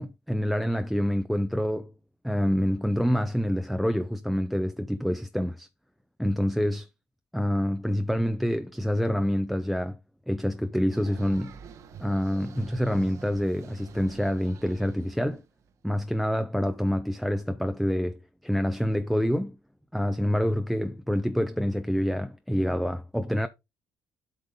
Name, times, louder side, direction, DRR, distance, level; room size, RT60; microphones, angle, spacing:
voice 1, 0.0-1.9 2.2-5.7 6.2-6.9 7.3-10.0 10.3-11.6 12.0-15.4 15.8-19.6 19.9-23.5, equal, ahead, 0.6 m, -27 dB
sound 1, 10.9-15.9, right 7 dB, 60° right, 1.1 m, -47 dB
8.3 x 5.2 x 3.7 m
cardioid pair, 90°, 6 cm